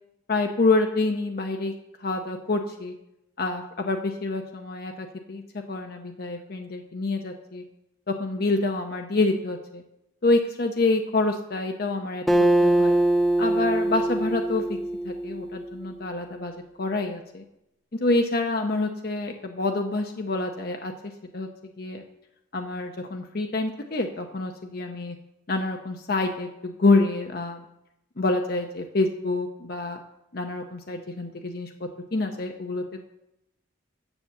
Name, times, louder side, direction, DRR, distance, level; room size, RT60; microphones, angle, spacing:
voice 1, 0.3-1.7 2.0-2.9 3.4-5.4 5.7-7.6 8.1-9.8 10.2-12.2 12.6-13.0 13.4-14.6 15.0-16.5 16.8-17.4 18.0-20.9 21.3-22.0 22.5-25.2 25.5-27.6 28.2-30.0 30.3-31.7 32.1-32.8, left 2 dB, 50° left, 4 dB, 0.7 m, -27 dB
Acoustic guitar, 12.3-15.9, right 1 dB, ahead, 0.6 m, -23 dB
7.9 x 7.1 x 7.0 m, 0.86 s
head